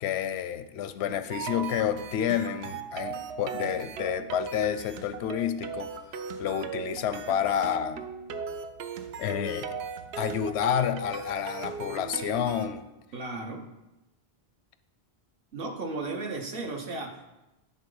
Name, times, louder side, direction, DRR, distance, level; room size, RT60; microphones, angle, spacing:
voice 1, 0.0-5.9 6.4-8.0 9.2-9.8 10.2-12.8, left 9 dB, 85° left, 11 dB, 0.8 m, -29 dB
sound 1, 1.3-12.7, right 5 dB, 75° right, 0.9 m, -38 dB
voice 2, 13.1-13.7 15.5-17.2, right 3 dB, 60° right, 2 dB, 1.2 m, -35 dB
10.5 x 3.8 x 5.5 m, 0.99 s
omnidirectional pair, 1.1 m